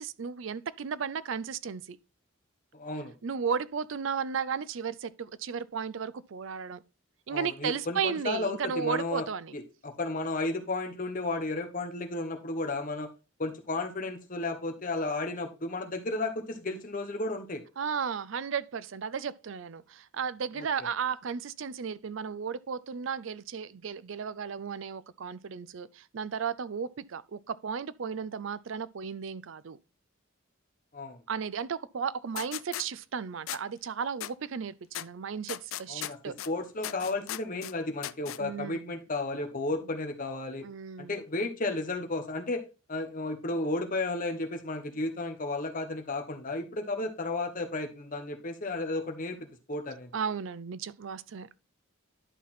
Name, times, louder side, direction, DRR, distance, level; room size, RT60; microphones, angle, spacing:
voice 1, 0.0-2.0 3.2-6.8 7.3-9.5 17.8-29.8 31.3-36.3 38.4-38.9 40.6-41.2 50.1-51.5, right 6 dB, 70° right, 0.5 m, -34 dB
voice 2, 2.7-3.1 7.3-9.2 9.5-13.1 13.4-17.6 20.5-20.7 30.9-31.2 35.9-36.2 36.5-40.7 41.0-50.1, left 2 dB, 40° left, 1.2 m, -33 dB
sound 1, 32.4-32.8 33.5-33.6 34.2-34.3 34.9-35.1 35.5-36.5 36.8-37.7 38.0-38.4, left 13 dB, 80° left, 0.4 m, -37 dB
11.0 x 4.2 x 4.3 m
head